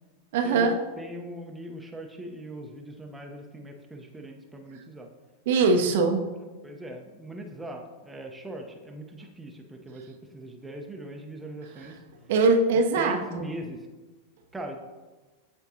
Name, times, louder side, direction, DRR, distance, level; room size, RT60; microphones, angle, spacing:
voice 1, 0.3-0.8 5.5-6.2 11.8-11.9 12.3-13.6, right 3 dB, 55° right, 3 dB, 0.7 m, -22 dB
voice 2, 1.0-5.1 6.6-12.0 13.0-13.8 14.5-14.8, right 1 dB, 10° right, 2 dB, 0.8 m, -40 dB
13.0 x 4.4 x 2.7 m, 1.3 s
figure-of-eight pair, 90°, 0 cm